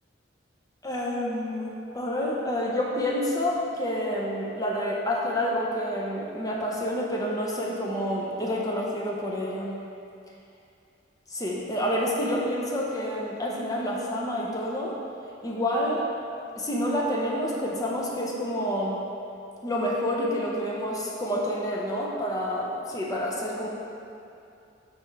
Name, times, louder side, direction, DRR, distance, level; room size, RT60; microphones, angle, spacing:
voice 1, 0.8-9.8 11.3-15.0 15.4-16.1 16.6-19.0 19.6-23.7, equal, 20° left, -3 dB, 0.7 m, -28 dB
6.4 x 5.2 x 3.3 m, 2.6 s
head